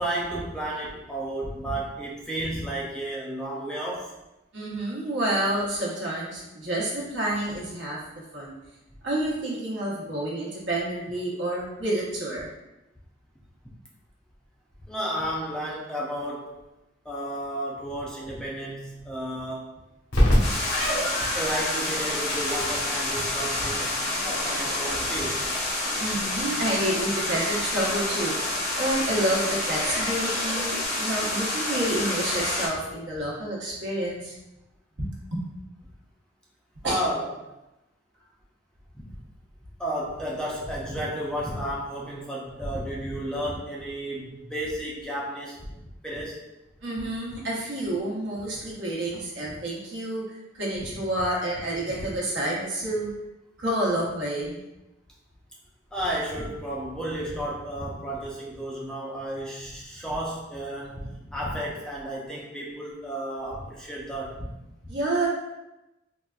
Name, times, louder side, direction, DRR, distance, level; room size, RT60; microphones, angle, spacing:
voice 1, 0.0-4.1 14.9-16.5 17.0-19.7 21.3-25.4 36.8-37.3 38.9-39.0 39.8-45.6 46.0-46.4 51.9-52.1 55.9-64.6 64.8-64.9, right 1 dB, 5° left, -5 dB, 0.4 m, -32 dB
voice 2, 4.5-8.0 8.3-8.5 9.0-12.5 26.0-28.3 28.8-34.4 35.0-35.4 36.8-36.9 46.8-53.1 53.6-54.6 64.9-65.3, right 1 dB, 65° right, -4 dB, 0.9 m, -29 dB
Crackle, 20.1-30.9, equal, 80° left, 1.1 m, -30 dB
sound 1, 20.4-32.7, left 1 dB, 50° left, 0.7 m, -28 dB
3.9 x 2.3 x 2.3 m, 0.96 s
head